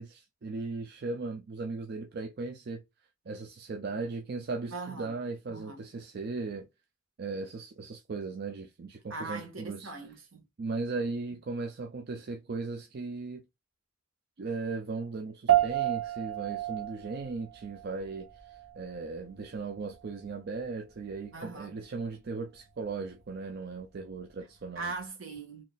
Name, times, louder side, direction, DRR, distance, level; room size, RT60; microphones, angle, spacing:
voice 1, 0.0-2.8 3.3-6.7 7.2-9.9 10.6-13.4 14.4-24.9, right 3 dB, 50° right, 0.5 m, -37 dB
voice 2, 4.7-5.1 5.5-5.8 9.1-10.4 21.3-21.8 24.7-25.6, right 3 dB, 75° right, 1.5 m, -40 dB
sound 1, 15.5-25.1, right 13 dB, 90° right, 0.7 m, -34 dB
4.0 x 2.9 x 2.2 m
head